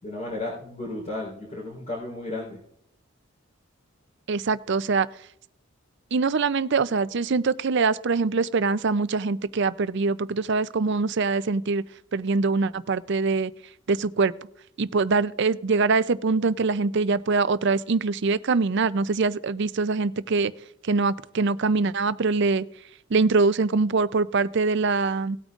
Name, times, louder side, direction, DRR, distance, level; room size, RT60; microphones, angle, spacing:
voice 1, 0.0-2.6, left 2 dB, 35° left, -6 dB, 4.0 m, -33 dB
voice 2, 4.3-5.1 6.1-11.8 12.1-13.5 13.9-14.3 14.8-20.5 20.8-22.7 23.1-25.4, right 4 dB, 55° right, 15 dB, 0.5 m, -23 dB
18.5 x 8.9 x 2.5 m, 0.68 s
head